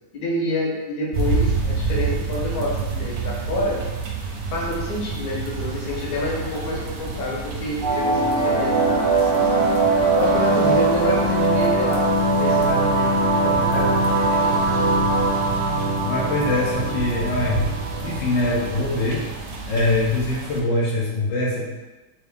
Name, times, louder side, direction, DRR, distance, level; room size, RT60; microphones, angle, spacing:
voice 1, 0.1-3.9 4.5-9.7 10.1-12.1 12.4-15.1, left 1 dB, 65° left, -4 dB, 1.4 m, -28 dB
sound 1, 1.1-20.6, right 4 dB, 65° right, 0.9 m, -30 dB
sound 2, 7.8-18.8, right 2 dB, 85° right, 1.6 m, -21 dB
voice 2, 16.0-17.6 18.0-19.2 19.7-21.7, left 2 dB, 90° left, -4 dB, 1.5 m, -23 dB
4.6 x 2.4 x 3.4 m, 1.1 s
omnidirectional pair, 1.9 m